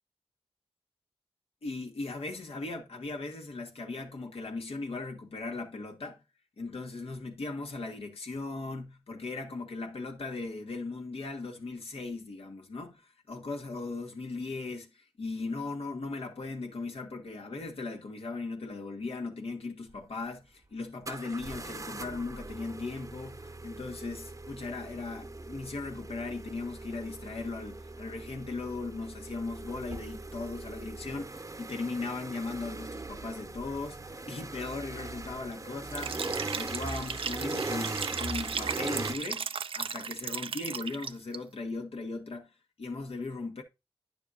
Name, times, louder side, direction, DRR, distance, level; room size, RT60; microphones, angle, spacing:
voice 1, 1.6-6.2 6.6-36.3 36.5-39.5 39.7-43.6, left 3 dB, 80° left, 1.3 m, -38 dB
sound 1, 19.9-20.0 21.1-39.2, right 2 dB, 35° right, 0.8 m, -40 dB
Liquid, 35.9-41.4, right 6 dB, 65° right, 0.4 m, -36 dB
9.7 x 6.8 x 2.5 m
cardioid pair, 50°, 10 cm